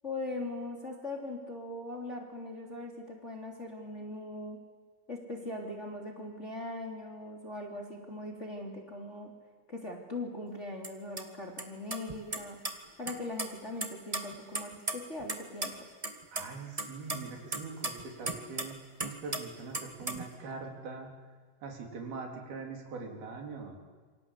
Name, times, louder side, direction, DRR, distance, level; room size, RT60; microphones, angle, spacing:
voice 1, 0.0-4.6 5.1-9.3 9.7-12.6 13.0-15.9, left 2 dB, 20° left, 1 dB, 3.2 m, -40 dB
sound 1, 10.8-10.9 11.2-11.3 11.6-11.7 11.9-12.7 13.1-13.5 13.8-15.4 15.6-15.7 16.0-16.4 16.8-18.7 19.0-19.4 19.7-20.3, right 2 dB, 20° right, 1.0 m, -34 dB
voice 2, 16.3-21.1 21.6-23.8, right 4 dB, 70° right, 3 dB, 5.5 m, -42 dB
28.5 x 24.5 x 8.4 m, 1.5 s
omnidirectional pair, 4.5 m